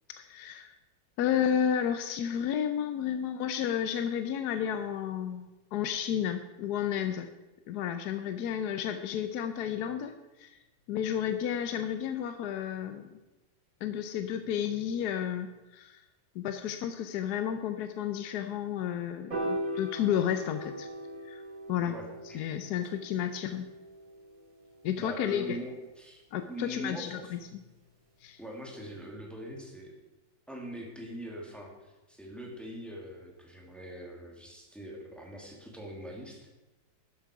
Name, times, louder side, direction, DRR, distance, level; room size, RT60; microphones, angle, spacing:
voice 1, 0.2-0.7 1.2-7.3 7.7-10.6 10.9-13.1 13.8-16.0 16.3-20.9 21.2-21.4 21.7-21.9 22.3-23.7 24.8-25.6 26.3-27.4 28.2-28.4, left 9 dB, 70° left, 8 dB, 1.0 m, -32 dB
Piano, 19.3-25.6, right 1 dB, 75° right, 5.4 m, -40 dB
voice 2, 21.8-22.4 25.0-26.2 26.5-27.3 28.4-29.9 30.5-36.5, equal, ahead, -1 dB, 1.9 m, -42 dB
12.0 x 7.4 x 4.8 m, 1.1 s
omnidirectional pair, 2.0 m